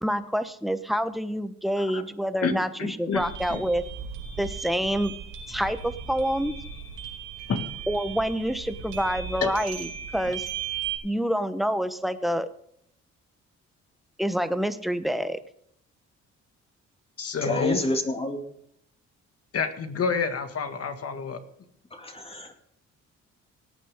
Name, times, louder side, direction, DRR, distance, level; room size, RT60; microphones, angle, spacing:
voice 1, 0.0-3.8 4.4-5.1 5.5-6.6 7.9-10.5 11.0-12.5 14.2-15.4, equal, ahead, 10 dB, 1.1 m, -27 dB
voice 2, 2.8-3.2 3.5-3.6 7.5-7.7 9.4-9.5 17.2-17.8 19.5-21.4, left 5 dB, 50° left, 7 dB, 2.0 m, -28 dB
sound 1, 3.1-11.0, right 7 dB, 85° right, 3.0 m, -37 dB
voice 3, 17.4-18.4 21.9-22.5, left 1 dB, 20° left, 3 dB, 2.5 m, -29 dB
18.0 x 9.3 x 3.7 m, 0.69 s
cardioid pair, 90°, 30 cm